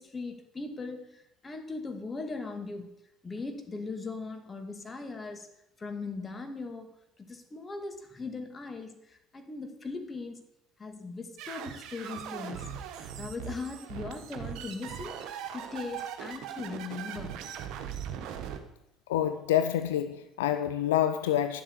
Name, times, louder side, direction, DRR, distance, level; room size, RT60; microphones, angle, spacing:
voice 1, 0.0-2.9 3.2-5.5 5.8-10.4 10.8-17.4, left 3 dB, 25° left, 2.3 m, -39 dB
sound 1, 11.4-18.6, right 8 dB, 65° right, 1.4 m, -40 dB
voice 2, 19.1-21.6, left 11 dB, 80° left, 0.5 m, -27 dB
11.0 x 7.6 x 6.8 m
hypercardioid pair, 60°, 0 cm